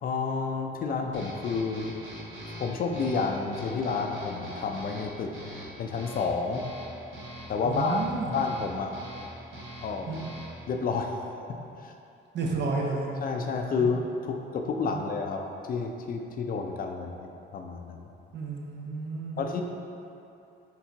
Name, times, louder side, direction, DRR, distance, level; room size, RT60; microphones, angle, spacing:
voice 1, 0.0-1.9 2.5-5.3 5.8-6.7 7.5-8.9 9.8-10.2 10.7-11.2 11.8-11.9 13.2-18.1 19.4-19.6, left 4 dB, 45° left, 3 dB, 0.4 m, -30 dB
sound 1, 1.1-10.7, equal, 85° right, 1.1 m, -43 dB
voice 2, 7.6-8.3 10.1-10.2 12.3-13.1 13.8-13.9 14.9-15.0 18.3-19.5, right 3 dB, 65° right, 0 dB, 0.6 m, -31 dB
4.4 x 3.3 x 2.8 m, 2.7 s
cardioid pair, 90°, 20 cm